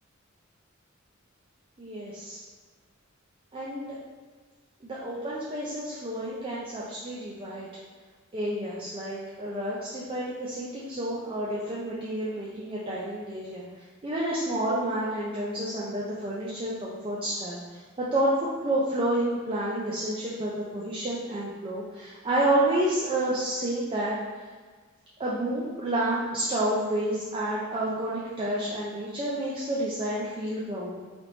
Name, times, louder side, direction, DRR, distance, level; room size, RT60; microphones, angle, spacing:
voice 1, 1.8-2.4 3.5-4.0 4.8-7.7 8.3-13.6 14.0-24.2 25.2-31.0, right 1 dB, 25° right, -6 dB, 0.4 m, -29 dB
3.8 x 3.3 x 3.1 m, 1.4 s
head